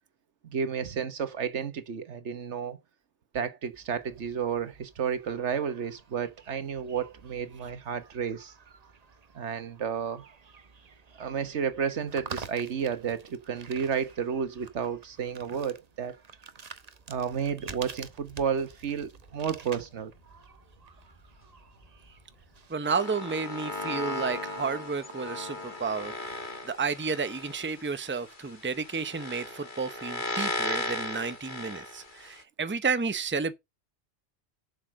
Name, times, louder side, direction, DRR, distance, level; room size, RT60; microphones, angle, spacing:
voice 1, 0.4-2.8 3.3-8.5 9.3-10.2 11.2-16.1 17.1-20.1, right 7 dB, 85° right, 1.4 m, -32 dB
sound 1, 3.7-22.7, right 5 dB, 40° right, 0.9 m, -49 dB
sound 2, 17.1-22.7, equal, 30° left, 4.0 m, -59 dB
voice 2, 22.7-26.2 26.6-33.5, right 5 dB, 10° right, 0.7 m, -31 dB
sound 3, 22.8-32.4, left 2 dB, 45° left, 1.7 m, -36 dB
7.6 x 6.6 x 6.3 m
omnidirectional pair, 1.1 m